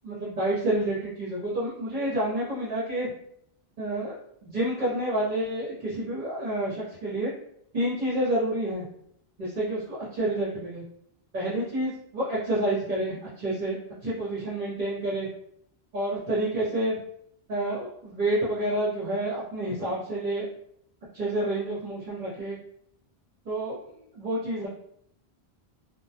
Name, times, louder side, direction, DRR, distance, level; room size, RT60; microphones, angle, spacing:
voice 1, 0.0-3.1 3.8-7.3 7.7-8.8 9.4-10.8 11.3-13.7 14.0-15.3 15.9-17.0 17.5-20.5 21.1-22.6 23.4-23.8 24.1-24.7, right 1 dB, 50° right, -8 dB, 0.8 m, -29 dB
2.1 x 2.1 x 2.7 m, 0.71 s
omnidirectional pair, 1.1 m